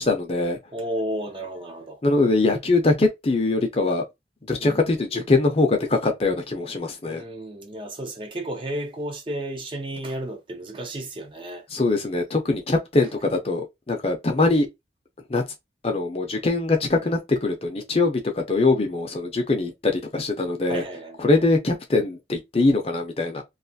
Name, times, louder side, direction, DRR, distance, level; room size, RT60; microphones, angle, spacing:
voice 1, 0.0-0.6 2.0-4.0 4.5-7.2 11.7-14.7 15.3-15.4 15.8-20.8 21.2-23.4, left 3 dB, 35° left, 0.6 m, -22 dB
voice 2, 0.7-2.0 4.6-4.8 7.0-11.6 20.7-21.2, right 1 dB, 30° right, 0.5 m, -32 dB
2.5 x 2.4 x 2.6 m
head